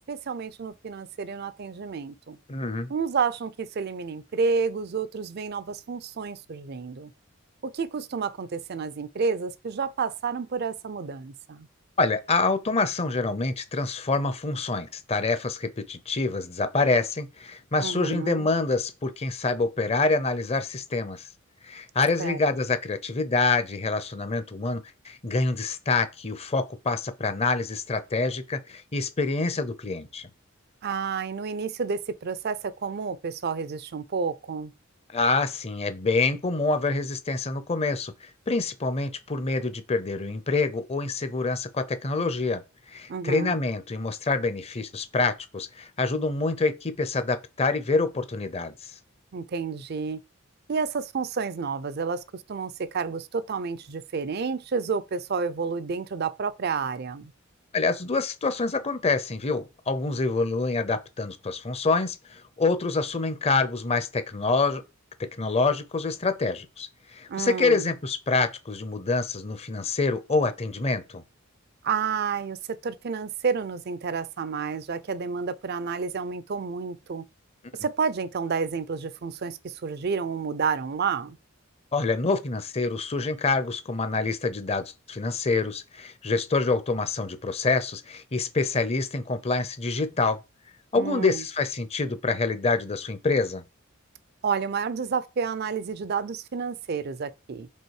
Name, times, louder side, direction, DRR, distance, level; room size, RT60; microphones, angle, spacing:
voice 1, 0.1-2.4 2.9-7.1 7.6-11.7 17.8-18.5 22.2-22.4 30.8-34.7 43.1-43.5 49.3-50.2 50.7-57.3 67.3-67.9 71.8-77.2 77.8-81.4 90.9-91.4 94.4-97.7, right 5 dB, 50° right, 0.5 m, -30 dB
voice 2, 2.5-2.9 12.0-21.3 21.6-30.3 35.1-42.6 42.9-48.9 57.7-64.8 65.4-71.2 81.9-90.4 90.9-93.6, left 3 dB, 30° left, 0.6 m, -26 dB
5.4 x 3.8 x 4.8 m
head